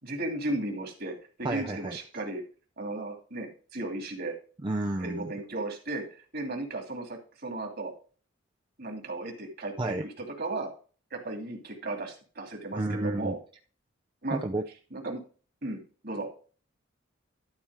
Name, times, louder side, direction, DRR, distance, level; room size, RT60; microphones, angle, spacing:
voice 1, 0.0-2.4 2.8-4.3 5.0-7.9 8.8-10.7 11.1-13.4 14.2-14.4 14.9-15.2 15.6-16.3, right 2 dB, 50° right, 3 dB, 2.5 m, -35 dB
voice 2, 1.4-2.0 4.6-5.3 9.8-10.0 12.7-13.4 14.3-14.6, right 2 dB, 25° right, 3 dB, 0.5 m, -31 dB
12.0 x 4.4 x 4.8 m, 0.38 s
head